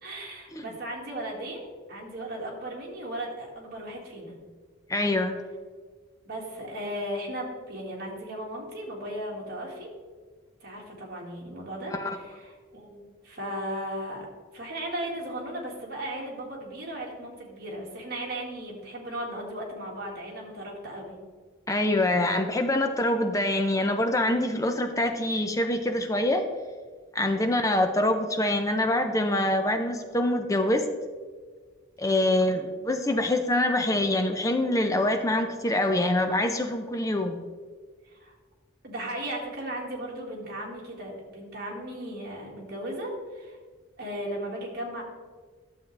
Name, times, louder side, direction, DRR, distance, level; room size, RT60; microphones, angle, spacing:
voice 1, 0.0-4.3 6.3-9.9 10.6-14.3 14.5-21.2 27.4-27.6 32.2-32.4 38.1-38.4 38.8-43.6 44.0-45.0, right 1 dB, 50° right, -2 dB, 2.0 m, -36 dB
voice 2, 4.9-5.4 11.9-12.2 21.7-26.4 27.1-30.9 32.0-37.4, left 1 dB, 15° left, 6 dB, 0.5 m, -25 dB
11.5 x 7.2 x 3.3 m, 1.5 s
head